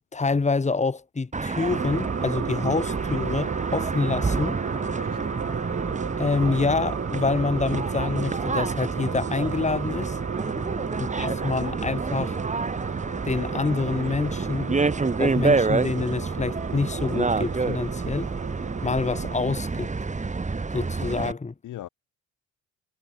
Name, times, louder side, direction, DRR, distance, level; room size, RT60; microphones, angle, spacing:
voice 1, 0.1-4.6 6.2-10.2 11.0-12.4 13.2-14.8 15.2-18.3 18.8-19.9 20.7-21.5, left 4 dB, 25° left, 2.8 m, -27 dB
sound 1, 1.3-21.3, right 4 dB, 25° right, 2.8 m, -29 dB
sound 2, 1.7-19.3, right 7 dB, 50° right, 7.5 m, -33 dB
voice 2, 10.4-11.0 21.6-21.9, left 13 dB, 80° left, 6.0 m, -41 dB
cardioid pair, 90°, 30 cm